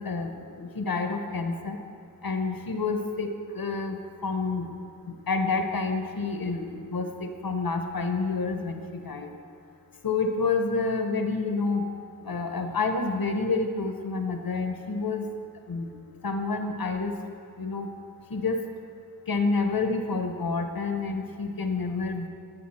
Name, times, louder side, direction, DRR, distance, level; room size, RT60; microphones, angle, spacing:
voice 1, 0.0-1.8 2.2-4.0 4.2-4.7 5.1-9.3 10.0-11.9 12.2-15.2 15.7-15.9 16.2-17.1 17.6-17.9 18.3-18.6 19.3-22.3, left 4 dB, 75° left, 6 dB, 0.9 m, -28 dB
12.5 x 8.2 x 4.3 m, 2.3 s
wide cardioid pair, 55°, 36 cm